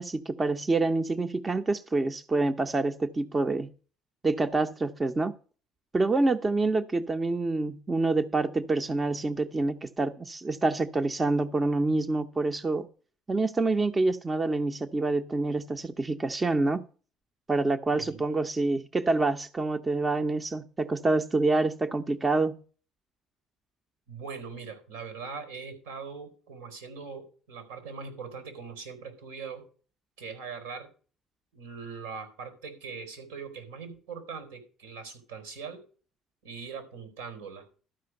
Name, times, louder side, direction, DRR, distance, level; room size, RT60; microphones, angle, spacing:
voice 1, 0.0-3.7 4.2-5.3 5.9-12.9 13.3-16.8 17.5-22.6, right 3 dB, 25° right, 0.8 m, -27 dB
voice 2, 24.1-29.6 30.2-30.9 31.5-35.8 36.4-37.7, right 5 dB, 85° right, 4.3 m, -41 dB
12.5 x 5.0 x 7.9 m
hypercardioid pair, 55°, 0 cm